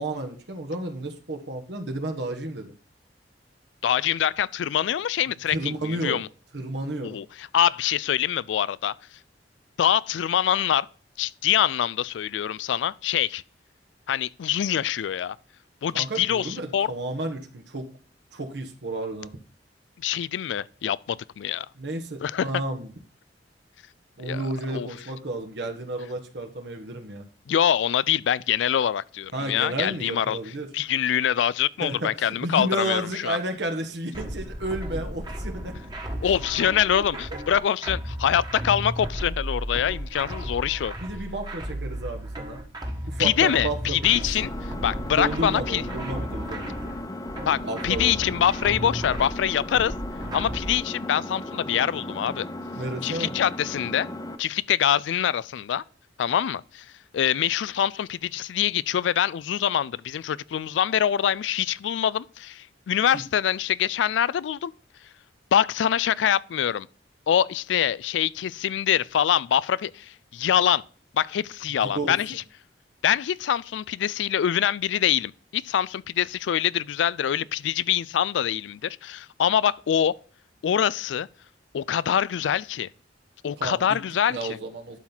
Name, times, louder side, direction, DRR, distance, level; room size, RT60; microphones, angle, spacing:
voice 1, 0.0-2.7 5.5-6.2 6.5-7.2 15.9-17.9 18.3-19.3 21.8-22.9 24.2-27.3 29.3-30.7 31.8-35.8 36.9-37.0 41.0-42.6 43.1-44.5 45.0-46.9 47.6-48.4 52.8-53.3 63.1-63.2 71.8-72.2 83.6-84.0 84.3-85.0, right 2 dB, 70° right, 1.3 m, -32 dB
voice 2, 3.8-6.3 7.0-8.9 9.8-10.9 11.2-13.4 14.1-15.4 15.8-16.9 20.0-21.7 22.2-22.5 24.2-24.4 24.7-24.9 27.5-30.4 30.7-33.4 36.2-40.9 43.2-44.5 44.8-45.8 47.5-49.9 50.3-52.5 53.0-54.1 54.4-55.8 56.2-56.9 57.1-64.7 65.5-66.9 67.3-70.8 71.1-72.4 73.0-80.1 80.6-81.3 81.7-82.9 83.4-84.6, left 9 dB, 90° left, 0.3 m, -24 dB
sound 1, 34.1-50.7, equal, 25° right, 1.4 m, -34 dB
Engine, 44.4-54.4, left 1 dB, 20° left, 0.6 m, -36 dB
11.5 x 4.4 x 3.9 m
head